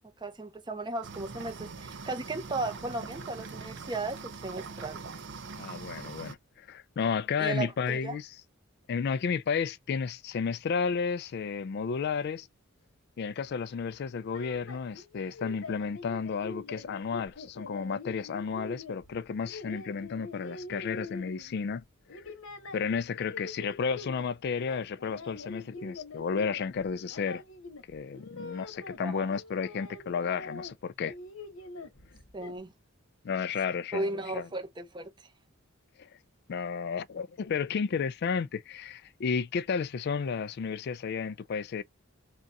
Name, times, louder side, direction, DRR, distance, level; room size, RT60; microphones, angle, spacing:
voice 1, 0.2-5.0 7.4-8.2 29.0-29.3 32.3-32.7 33.9-35.3, right 2 dB, 20° right, 0.8 m, -36 dB
sound 1, 1.0-6.3, right 4 dB, 60° right, 0.6 m, -42 dB
voice 2, 5.6-8.3 8.9-12.5 13.2-21.8 22.1-22.2 22.7-27.4 27.9-31.1 33.2-34.5 36.0-36.1 36.5-41.8, left 6 dB, 50° left, 0.3 m, -32 dB
sound 2, 14.1-21.7 22.1-24.3 24.6-29.0 29.3-30.7 31.0-32.6, left 3 dB, 80° left, 1.0 m, -44 dB
3.7 x 2.4 x 4.0 m
head